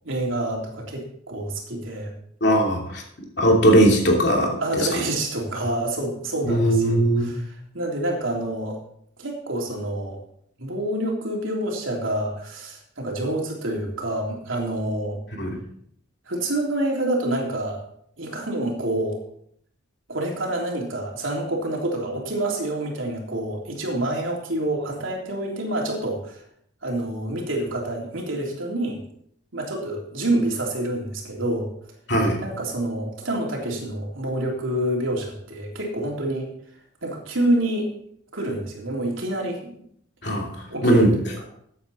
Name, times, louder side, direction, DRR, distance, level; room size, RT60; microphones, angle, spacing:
voice 1, 0.0-2.1 4.6-8.8 9.2-10.2 10.6-15.2 16.3-17.8 18.2-19.2 20.1-26.4 26.8-29.0 29.5-31.7 32.4-36.5 37.0-37.9 38.3-39.8 40.7-41.4, right 1 dB, 90° right, 0 dB, 3.3 m, -27 dB
voice 2, 2.4-3.0 3.4-4.9 6.4-7.3 15.3-15.6 32.1-32.4 40.2-41.1, right 1 dB, 60° left, 0 dB, 2.7 m, -19 dB
14.0 x 8.7 x 4.2 m, 0.67 s
head